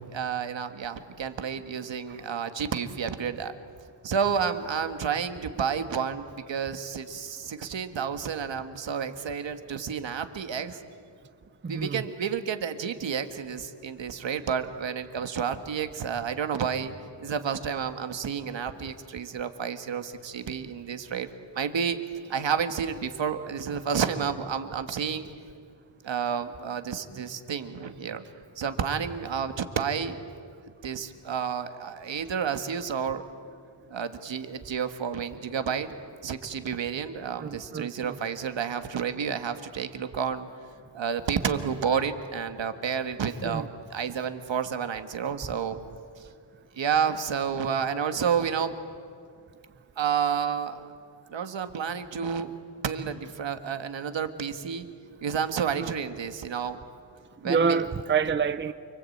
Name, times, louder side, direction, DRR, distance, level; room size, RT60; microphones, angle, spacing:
voice 1, 0.1-3.5 4.0-10.8 11.7-16.9 17.2-21.3 21.6-22.0 22.3-25.3 26.0-28.2 28.6-30.2 30.8-33.2 33.9-36.0 36.2-40.5 40.9-45.8 46.7-48.8 50.0-50.9 51.3-52.5 52.8-54.9 55.2-56.8 57.4-57.9, right 7 dB, 70° right, 1.8 m, -30 dB
voice 2, 11.6-12.0 37.4-38.2 43.4-43.6 55.8-55.9 57.4-58.7, right 6 dB, 25° right, 0.6 m, -27 dB
29.5 x 23.0 x 8.7 m
wide cardioid pair, 155°, 47 cm